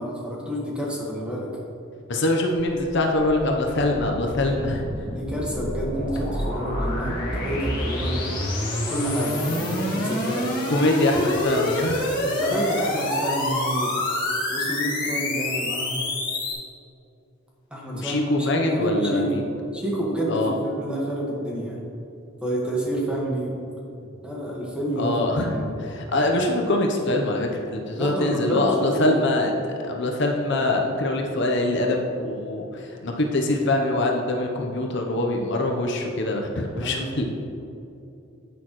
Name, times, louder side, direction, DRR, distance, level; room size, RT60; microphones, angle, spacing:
voice 1, 0.0-1.5 4.4-4.5 5.1-8.3 8.9-10.5 12.2-13.9 14.5-16.1 17.7-19.4 19.7-21.8 22.4-23.6 24.2-25.1 25.5-25.7 27.9-29.2 33.1-33.3 36.8-37.1, right 1 dB, 5° right, -4 dB, 1.6 m, -28 dB
voice 2, 2.1-4.9 10.7-12.1 17.9-19.5 20.3-20.5 25.0-29.6 29.8-37.3, left 2 dB, 60° left, 1 dB, 0.9 m, -24 dB
sound 1, 2.9-16.5, left 1 dB, 40° left, 2.1 m, -27 dB
10.0 x 8.6 x 3.1 m, 2.7 s
head